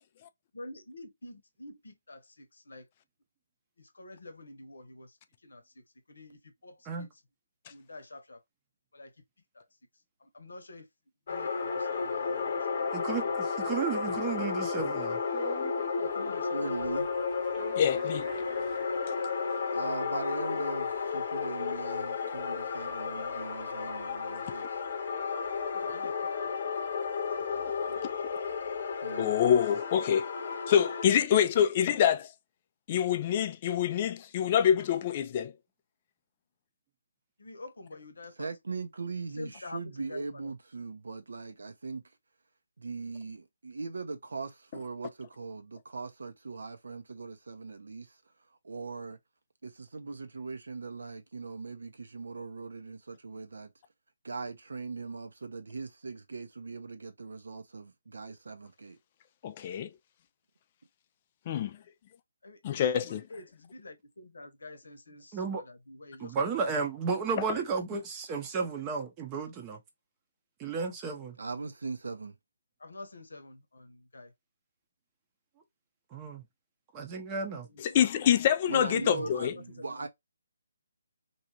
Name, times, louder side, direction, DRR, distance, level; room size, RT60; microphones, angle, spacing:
voice 1, 0.5-2.9 3.8-5.2 5.4-7.1 7.7-8.4 8.9-9.1 9.5-9.6 10.2-10.9 11.3-13.4 16.0-16.7 25.7-26.5 27.3-28.1 37.4-38.5 39.4-40.2 62.4-66.6 67.0-67.2 72.8-74.3 77.6-78.1 78.9-80.1, left 2 dB, 80° left, 0.8 m, -48 dB
sound 1, 11.3-31.0, left 5 dB, 50° left, 0.7 m, -33 dB
voice 2, 12.9-15.2 65.3-65.6 66.2-69.8 70.6-71.4 76.1-76.4 76.9-77.7, right 5 dB, 20° right, 0.6 m, -33 dB
sound 2, 15.3-16.5 16.8-19.4 19.8-19.9 20.1-24.6 24.9-28.9, right 1 dB, 5° right, 0.9 m, -49 dB
voice 3, 16.5-17.1 19.7-24.6 29.0-29.3 38.4-42.0 42.8-48.2 48.6-49.2 49.6-53.7 54.2-59.0 71.4-72.3 78.7-80.1, right 4 dB, 75° right, 0.7 m, -40 dB
voice 4, 17.8-18.3 19.1-19.2 29.2-30.3 30.7-32.3 32.9-35.5 59.4-59.9 61.5-61.7 62.6-63.2 77.8-79.5, left 9 dB, 30° left, 0.3 m, -26 dB
2.7 x 2.4 x 2.8 m
hypercardioid pair, 155°, 0 cm